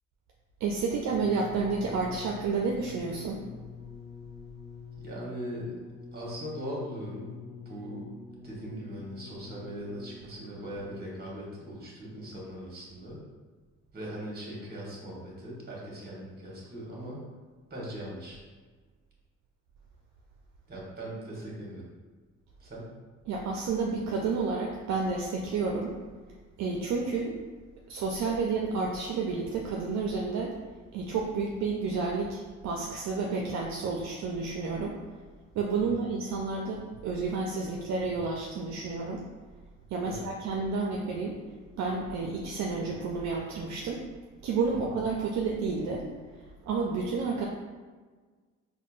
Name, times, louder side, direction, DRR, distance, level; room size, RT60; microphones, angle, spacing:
voice 1, 0.6-3.4 23.3-25.9 26.6-27.4 27.9-30.5 30.9-35.0 35.5-39.2 39.9-41.4 41.8-44.0 44.4-46.1 46.6-47.5, right 4 dB, 65° right, -1 dB, 0.4 m, -30 dB
sound 1, 1.1-11.2 12.0-12.1, left 5 dB, 35° left, 0.5 m, -47 dB
voice 2, 5.0-5.8 6.1-8.1 8.4-13.2 13.9-17.2 17.7-18.4 20.7-21.8 22.6-22.9 35.8-36.0 40.0-40.3 44.7-44.9, equal, 30° right, -4 dB, 1.1 m, -40 dB
4.1 x 2.1 x 2.4 m, 1.4 s
cardioid pair, 90°, 30 cm